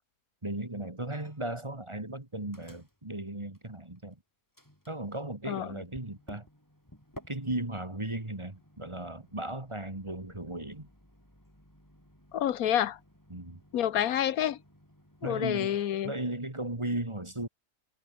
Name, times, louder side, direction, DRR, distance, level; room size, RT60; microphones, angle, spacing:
voice 1, 0.4-4.2 4.9-6.5 7.3-10.9 13.3-13.6 15.2-15.8 16.0-17.5, right 1 dB, 15° right, 2.4 m, -36 dB
Microwave oven, 1.1-1.6 1.9-4.1 4.5-15.6, equal, 10° left, 7.8 m, -56 dB
voice 2, 12.3-13.0 13.7-14.6 15.2-16.1, left 11 dB, 65° left, 1.3 m, -28 dB
omnidirectional pair, 1.7 m